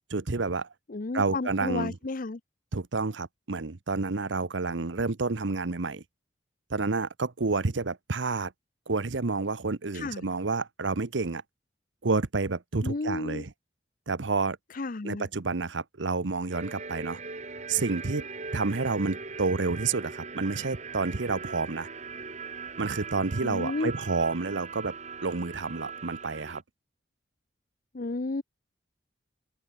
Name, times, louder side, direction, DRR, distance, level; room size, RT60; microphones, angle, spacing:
voice 1, 0.1-0.7 1.1-2.0 2.7-6.0 6.7-8.5 8.9-11.4 12.0-13.5 14.1-14.6 15.0-17.2 17.7-18.3 18.5-21.9 22.8-24.9 25.2-26.6, right 3 dB, 75° right, 0.9 m, -29 dB
voice 2, 0.9-2.4 9.9-10.2 12.8-13.4 14.8-15.3 23.4-23.9 27.9-28.4, left 3 dB, 45° left, 0.7 m, -32 dB
sound 1, 16.5-26.6, right 4 dB, 40° right, 2.5 m, -40 dB
head